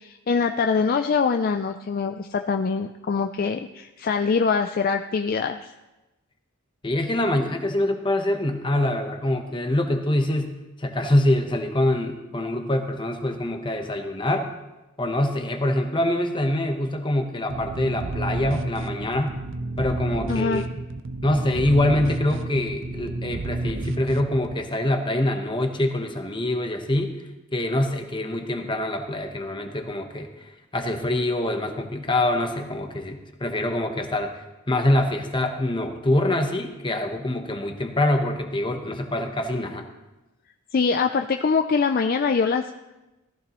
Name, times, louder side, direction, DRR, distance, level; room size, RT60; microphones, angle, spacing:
voice 1, 0.0-5.7 20.3-20.6 40.7-42.7, left 5 dB, 45° left, 6 dB, 0.4 m, -23 dB
voice 2, 6.8-10.5 10.8-14.5 15.0-19.4 19.8-20.6 21.2-27.1 27.5-30.3 30.7-39.9, left 1 dB, 20° left, 5 dB, 1.0 m, -25 dB
sound 1, 17.5-24.5, right 2 dB, 60° right, 0.6 m, -31 dB
14.5 x 14.0 x 3.1 m, 1.0 s
head